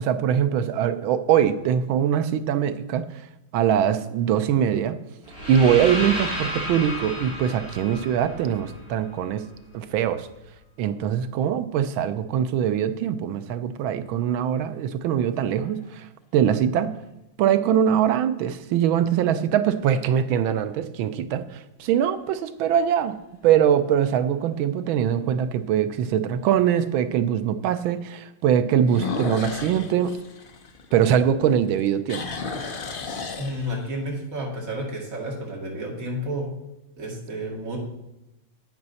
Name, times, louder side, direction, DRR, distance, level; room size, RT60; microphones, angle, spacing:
voice 1, 0.0-3.1 3.5-5.0 5.5-9.5 9.7-10.3 10.8-16.1 16.3-17.0 17.4-23.2 23.4-30.2 30.9-32.2, right 9 dB, 90° right, 11 dB, 1.5 m, -22 dB
sound 1, 5.3-9.3, left 1 dB, 30° left, 3.8 m, -32 dB
sound 2, 15.2-15.8 16.5-16.6 21.8-22.3 22.8-22.9 23.4-23.5 23.8-23.9 25.4-25.5 28.8-31.3 31.7-34.0, left 4 dB, 50° left, 0.6 m, -34 dB
voice 2, 33.4-36.5 37.0-37.8, equal, 40° right, -2 dB, 2.6 m, -31 dB
11.0 x 8.7 x 4.1 m, 0.92 s
omnidirectional pair, 2.1 m